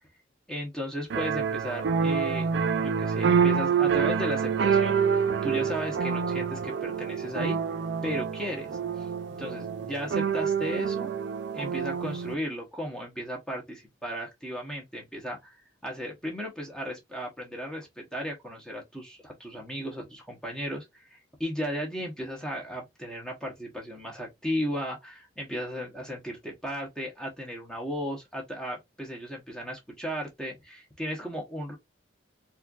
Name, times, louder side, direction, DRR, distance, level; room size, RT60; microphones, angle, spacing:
voice 1, 0.5-7.6 8.0-9.1 9.4-11.1 11.5-15.6 15.8-31.8, equal, 5° left, 0.9 m, -35 dB
sound 1, 1.1-12.3, right 6 dB, 60° right, 0.3 m, -27 dB
4.2 x 2.4 x 2.3 m
head